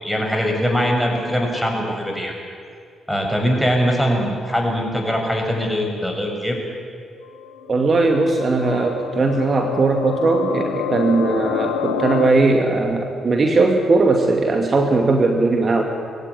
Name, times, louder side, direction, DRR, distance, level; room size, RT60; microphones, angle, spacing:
voice 1, 0.0-2.3 3.1-6.6, equal, ahead, 1 dB, 6.8 m, -21 dB
sound 1, 7.2-12.3, left 9 dB, 85° left, 1.0 m, -28 dB
voice 2, 7.7-15.8, right 3 dB, 45° right, 3 dB, 2.4 m, -18 dB
22.0 x 16.0 x 9.8 m, 2.3 s
hypercardioid pair, 45°, 0 cm